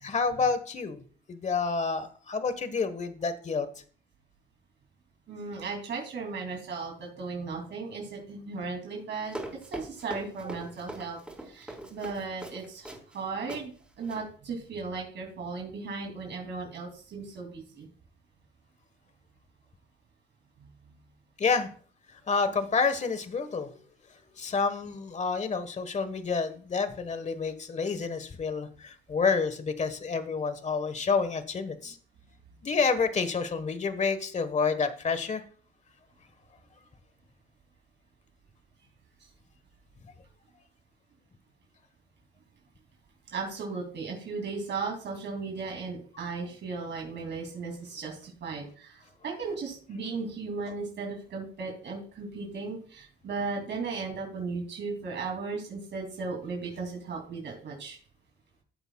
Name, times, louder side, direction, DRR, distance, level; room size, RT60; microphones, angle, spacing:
voice 1, 0.0-1.0 1.3-3.7 21.4-21.7 22.3-23.7 24.4-32.0 32.6-35.4, left 5 dB, 35° left, 11 dB, 1.3 m, -29 dB
voice 2, 5.3-11.2 11.4-17.9 39.2-39.3 43.3-58.0, right 4 dB, 65° right, 1 dB, 2.7 m, -36 dB
Run, 9.3-13.2 13.5-13.6 14.0-14.2, right 1 dB, 5° right, 4.4 m, -41 dB
14.5 x 8.1 x 2.3 m, 0.43 s
cardioid pair, 90°, 20 cm